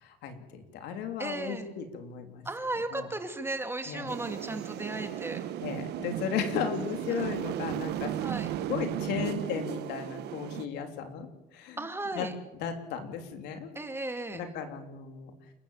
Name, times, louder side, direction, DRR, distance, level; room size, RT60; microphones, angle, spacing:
voice 1, 0.0-2.4 2.9-3.1 3.9-4.1 5.6-8.1 8.7-11.3 11.5-11.8 12.2-12.3 12.6-13.7 14.3-15.3, left 8 dB, 85° left, 5 dB, 3.4 m, -35 dB
voice 2, 1.2-1.7 2.4-5.4 8.2-8.5 11.8-12.3 13.7-14.4, right 2 dB, 15° right, 6 dB, 2.6 m, -35 dB
sound 1, 4.1-10.7, right 12 dB, 80° right, 1.1 m, -35 dB
29.0 x 14.0 x 7.4 m, 1.0 s
cardioid pair, 110°, 17 cm